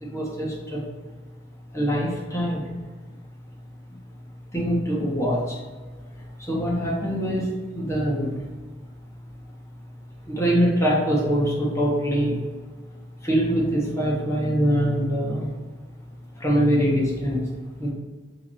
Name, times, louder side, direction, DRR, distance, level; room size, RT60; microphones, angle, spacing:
voice 1, 0.0-0.8 1.7-2.6 4.5-5.6 6.4-8.4 10.3-12.4 13.2-15.5 16.4-17.5 17.8-17.9, equal, 15° left, -4 dB, 1.0 m, -23 dB
4.0 x 2.9 x 4.2 m, 1.4 s
head